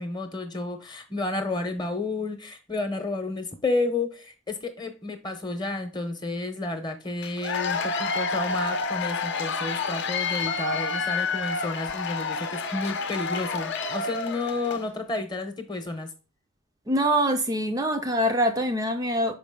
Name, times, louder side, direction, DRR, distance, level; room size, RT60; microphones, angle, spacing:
voice 1, 0.0-16.1, left 2 dB, 20° left, 0.8 m, -31 dB
Cheering / Applause / Crowd, 7.2-14.9, left 4 dB, 50° left, 0.7 m, -29 dB
voice 2, 16.9-19.4, equal, 15° right, 0.4 m, -24 dB
6.1 x 4.8 x 3.6 m
head